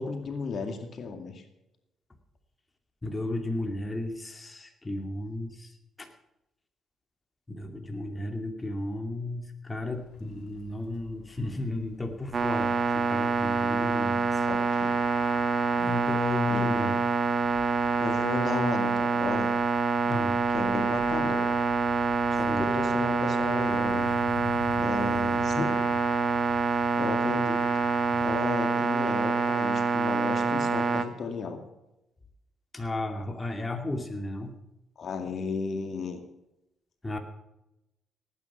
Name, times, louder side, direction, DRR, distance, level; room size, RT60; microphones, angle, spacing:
voice 1, 0.0-1.4 14.5-14.9 16.5-16.9 18.0-19.5 20.5-21.6 22.4-24.1 24.8-25.9 27.0-27.6 28.2-31.6 35.0-36.2, left 4 dB, 55° left, 5 dB, 2.2 m, -34 dB
voice 2, 3.0-5.7 6.0-6.1 7.5-14.4 15.7-17.0 20.1-20.4 22.5-22.7 32.7-34.5 37.0-37.2, left 1 dB, 20° left, 4 dB, 2.4 m, -34 dB
sound 1, 9.9-28.5, left 5 dB, 85° left, 2.5 m, -47 dB
sound 2, 12.3-31.0, right 4 dB, 45° right, 1.6 m, -26 dB
18.0 x 9.8 x 5.8 m, 0.91 s
cardioid pair, 90°, 0 cm